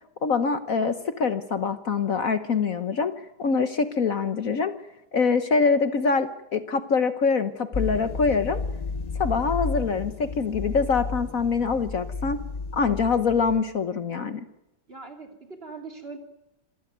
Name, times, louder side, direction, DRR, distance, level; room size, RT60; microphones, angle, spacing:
voice 1, 0.2-3.1 3.4-4.7 5.1-8.6 9.2-12.4 12.7-14.4, left 5 dB, 55° left, 10 dB, 1.4 m, -24 dB
sound 1, 7.7-13.6, left 4 dB, 35° left, 0.6 m, -32 dB
voice 2, 14.9-16.2, right 4 dB, 35° right, 4 dB, 3.3 m, -41 dB
27.0 x 15.5 x 9.3 m, 0.88 s
omnidirectional pair, 1.9 m